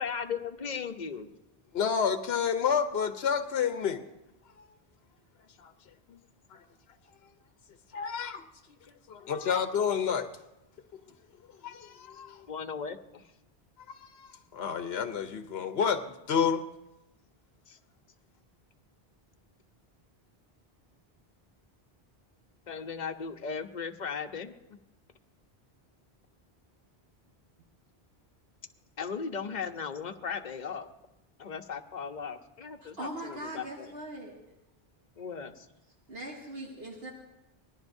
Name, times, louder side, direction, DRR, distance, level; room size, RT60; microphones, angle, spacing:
voice 1, 0.0-1.3 12.1-12.2 12.5-13.3 17.7-17.8 22.7-24.5 29.0-30.9 31.4-33.9 35.2-35.7, left 6 dB, 50° left, 6 dB, 1.0 m, -37 dB
voice 2, 1.7-4.0 5.6-5.7 6.1-6.2 6.5-6.6 7.9-8.4 9.1-10.3 11.6-12.5 13.9-16.6, left 7 dB, 80° left, 8 dB, 1.0 m, -30 dB
voice 3, 32.8-34.3 36.1-37.1, right 1 dB, 75° right, -3 dB, 2.5 m, -40 dB
25.0 x 19.5 x 2.7 m, 0.93 s
omnidirectional pair, 1.0 m